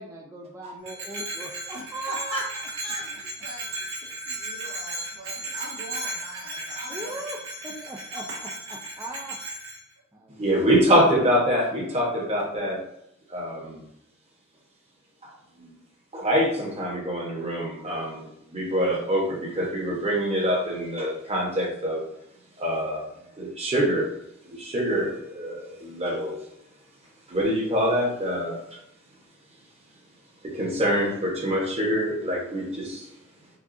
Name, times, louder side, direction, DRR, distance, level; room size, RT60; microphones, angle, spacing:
voice 1, 0.0-2.4 6.9-7.4 7.6-8.3 9.0-9.4 10.1-11.3, right 1 dB, 15° right, -3 dB, 0.4 m, -38 dB
Bell, 0.8-9.8, right 1 dB, 60° right, 1.4 m, -35 dB
voice 2, 1.7-2.4 2.8-7.2 8.3-8.4, right 1 dB, 75° right, -4 dB, 1.4 m, -41 dB
voice 3, 10.4-12.8 13.3-13.8 15.2-15.3 15.6-15.7 16.1-22.0 22.6-23.1 23.4-24.1 24.4-26.4 27.3-28.6 30.4-33.1, equal, 30° right, -3 dB, 1.1 m, -25 dB
6.0 x 2.3 x 2.6 m, 0.79 s
head